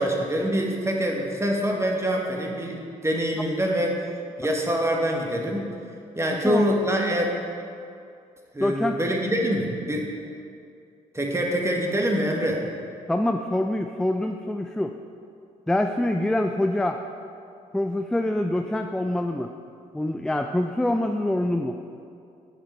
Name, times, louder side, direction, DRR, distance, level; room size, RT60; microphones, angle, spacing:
voice 1, 0.0-3.9 4.4-5.6 6.2-7.3 8.5-10.1 11.1-12.6, equal, 15° right, 0 dB, 1.5 m, -25 dB
voice 2, 8.6-8.9 13.1-14.9 15.7-17.0 17.7-19.5 19.9-21.8, left 1 dB, 5° left, 6 dB, 0.4 m, -25 dB
8.9 x 5.2 x 4.4 m, 2.5 s
hypercardioid pair, 45°, 17 cm